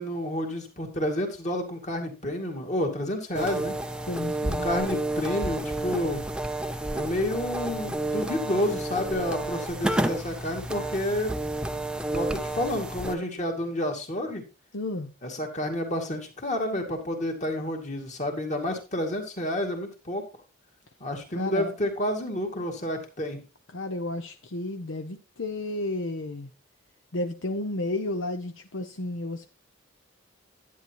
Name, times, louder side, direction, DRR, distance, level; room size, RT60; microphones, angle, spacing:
voice 1, 0.0-3.7 4.5-6.2 6.9-11.4 12.0-14.4 15.2-20.2 21.0-23.4, left 1 dB, 35° left, 2.3 m, -30 dB
sound 1, 3.3-13.2, right 1 dB, 5° right, 0.6 m, -30 dB
voice 2, 4.1-4.7 14.7-15.1 21.3-21.7 23.7-26.5 27.1-29.5, left 2 dB, 65° left, 0.8 m, -32 dB
11.0 x 9.4 x 3.0 m
head